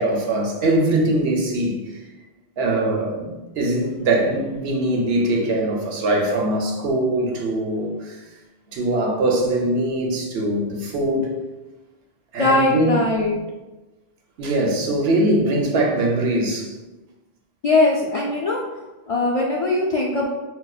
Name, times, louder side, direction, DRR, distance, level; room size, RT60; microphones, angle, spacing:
voice 1, 0.0-1.8 2.6-8.2 8.7-11.3 12.3-13.0 14.4-16.7, right 1 dB, 75° right, 0 dB, 0.9 m, -22 dB
voice 2, 12.4-13.4 17.6-18.6 19.1-20.3, left 2 dB, 60° left, -4 dB, 0.3 m, -20 dB
5.5 x 2.1 x 2.3 m, 1.1 s
omnidirectional pair, 1.1 m